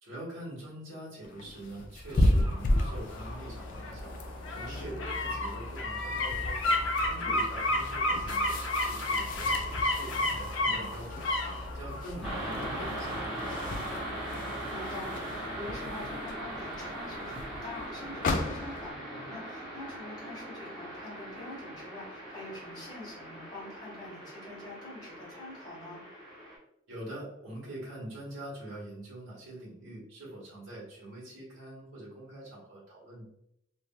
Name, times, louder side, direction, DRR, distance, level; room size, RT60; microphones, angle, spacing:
voice 1, 0.0-4.1 4.5-6.8 7.0-11.2 11.7-14.0 26.9-33.2, right 1 dB, 75° right, -5 dB, 1.4 m, -44 dB
sound 1, 1.2-18.9, left 1 dB, 40° left, 0.3 m, -35 dB
sound 2, 2.1-15.0 15.3-15.4, left 2 dB, 80° left, 0.6 m, -33 dB
voice 2, 4.7-5.0 7.2-7.3 14.7-26.0, left 2 dB, 20° left, -6 dB, 1.3 m, -45 dB
sound 3, 12.2-26.6, right 1 dB, ahead, 0.9 m, -40 dB
3.2 x 2.4 x 2.3 m, 0.75 s
head